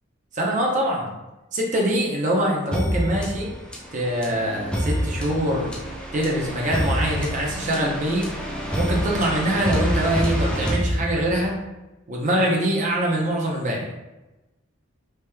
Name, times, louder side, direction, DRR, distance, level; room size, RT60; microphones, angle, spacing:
voice 1, 0.3-1.1 1.5-3.6 3.9-5.7 6.1-8.3 8.7-11.6 12.1-13.9, right 1 dB, 35° right, -2 dB, 0.6 m, -24 dB
sound 1, 2.7-11.6, equal, 5° left, 0.4 m, -27 dB
3.3 x 2.9 x 2.2 m, 1.0 s
head